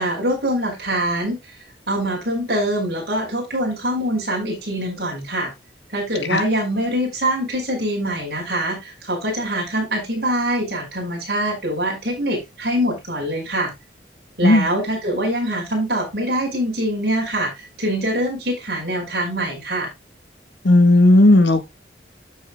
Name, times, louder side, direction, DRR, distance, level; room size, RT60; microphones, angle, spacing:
voice 1, 0.0-1.4 1.9-5.5 5.9-13.7 14.4-19.9, right 1 dB, 55° right, 5.4 m, -24 dB
voice 2, 20.6-21.7, left 1 dB, 80° left, 1.9 m, -13 dB
13.0 x 6.5 x 2.3 m
head